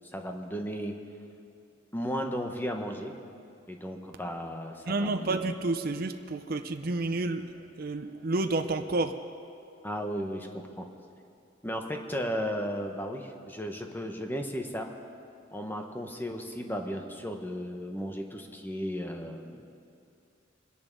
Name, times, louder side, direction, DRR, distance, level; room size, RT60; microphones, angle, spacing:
voice 1, 0.1-0.9 1.9-3.1 3.7-5.3 9.8-10.8 11.6-14.9 15.5-19.6, equal, 10° left, 3 dB, 1.2 m, -35 dB
voice 2, 4.9-7.4 7.8-9.1, right 2 dB, 50° right, 6 dB, 0.6 m, -30 dB
25.0 x 10.5 x 5.4 m, 2.5 s
head